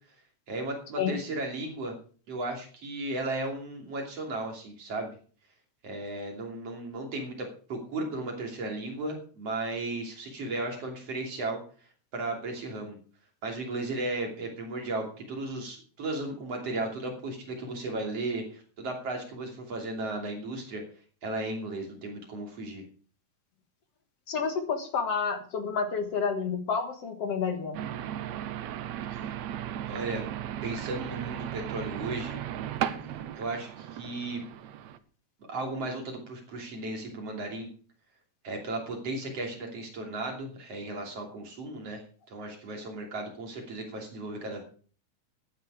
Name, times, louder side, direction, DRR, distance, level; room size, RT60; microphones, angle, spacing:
voice 1, 0.5-1.9 2.3-5.2 5.8-11.6 12.1-13.0 13.4-20.8 21.2-22.8 29.1-29.4 29.9-30.2 30.6-32.4 33.0-34.4 35.5-37.7 38.4-42.0 42.3-44.6, right 2 dB, 55° right, 1 dB, 3.9 m, -35 dB
voice 2, 24.3-27.8, left 5 dB, 60° left, 6 dB, 2.3 m, -29 dB
sound 1, 27.7-35.0, right 11 dB, 75° right, 2.1 m, -36 dB
14.5 x 9.7 x 4.9 m, 0.42 s
omnidirectional pair, 3.4 m